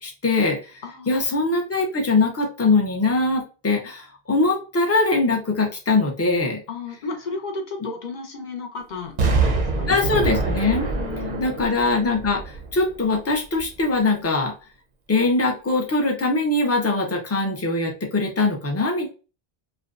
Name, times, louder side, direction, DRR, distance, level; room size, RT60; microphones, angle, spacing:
voice 1, 0.0-6.6 9.9-10.9 11.4-12.4 12.7-14.5 15.1-19.1, left 3 dB, 25° left, 1 dB, 0.3 m, -22 dB
voice 2, 0.8-1.5 6.7-9.9 10.9-11.6, left 4 dB, 50° left, 3 dB, 0.7 m, -34 dB
Explosion, 9.2-13.1 13.6-13.7, right 3 dB, 50° right, 0.6 m, -25 dB
2.5 x 2.1 x 2.4 m, 0.33 s
omnidirectional pair, 1.1 m